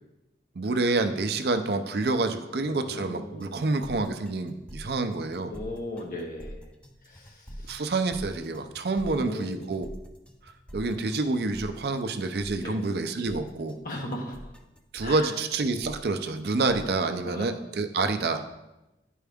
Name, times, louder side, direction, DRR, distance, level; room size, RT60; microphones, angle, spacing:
voice 1, 0.6-5.5 7.6-9.9 10.7-13.8 14.9-18.4, right 3 dB, 65° right, 8 dB, 0.5 m, -28 dB
voice 2, 2.6-3.6 5.0-5.1 5.5-6.6 7.1-7.8 9.2-9.7 12.6-12.8 13.8-14.4 15.0-15.3 17.2-17.5, left 1 dB, 50° left, 0 dB, 1.3 m, -37 dB
sound 1, 3.4-17.0, equal, 5° left, 0.4 m, -45 dB
10.0 x 4.6 x 3.5 m, 0.97 s
head